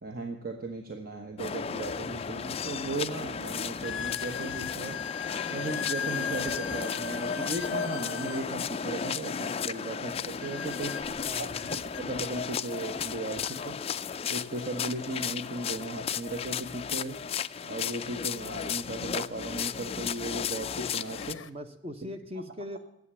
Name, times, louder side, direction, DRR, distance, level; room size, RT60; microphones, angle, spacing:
voice 1, 0.0-5.0 5.5-11.0 11.4-13.8 14.3-17.2 17.6-21.4, right 2 dB, 50° right, 4 dB, 1.2 m, -36 dB
sound 1, 1.4-21.3, left 7 dB, 30° left, 0.4 m, -34 dB
sound 2, 3.8-8.5 10.4-12.0 13.0-13.1 13.4-13.6 14.4-14.5 16.7-16.8 18.9-19.0 19.7-20.0 20.5-21.5, left 8 dB, 90° left, 0.7 m, -39 dB
voice 2, 11.1-11.5 21.4-22.8, left 1 dB, 35° right, 7 dB, 1.0 m, -40 dB
11.0 x 8.0 x 8.3 m, 0.85 s
head